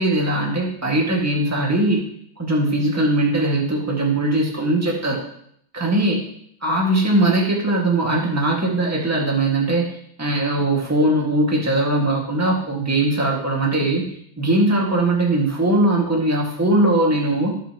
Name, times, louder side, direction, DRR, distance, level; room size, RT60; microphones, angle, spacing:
voice 1, 0.0-2.0 2.4-5.2 5.7-6.2 6.6-9.9 10.2-14.0 14.4-17.5, right 1 dB, 10° right, -2 dB, 1.7 m, -20 dB
15.0 x 5.5 x 3.0 m, 0.69 s
omnidirectional pair, 2.0 m